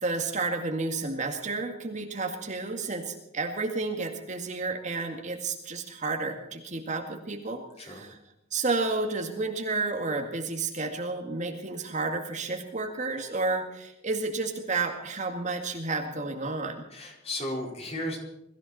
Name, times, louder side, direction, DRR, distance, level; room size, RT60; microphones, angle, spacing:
voice 1, 0.0-8.2 8.5-16.8, right 3 dB, 40° right, 3 dB, 2.1 m, -31 dB
voice 2, 16.9-18.2, left 1 dB, 30° left, 0 dB, 4.5 m, -34 dB
22.0 x 15.0 x 4.3 m, 0.85 s
head